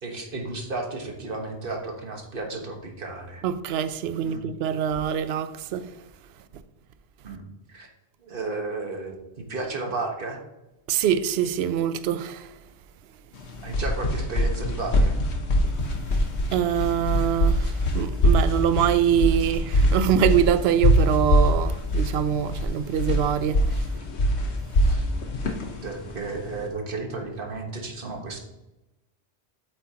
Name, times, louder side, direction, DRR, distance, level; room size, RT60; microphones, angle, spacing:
voice 1, 0.0-3.4 4.2-4.4 7.2-7.4 7.7-7.9 8.2-9.1 9.5-10.4 13.6-15.2 24.8-25.1 25.8-28.4, right 3 dB, 55° right, 1.5 m, -33 dB
voice 2, 3.4-5.9 10.9-12.5 16.5-23.8, right 9 dB, 75° right, 0.8 m, -24 dB
sound 1, 13.4-26.6, equal, 90° left, 1.3 m, -23 dB
8.4 x 8.0 x 2.9 m
omnidirectional pair, 1.1 m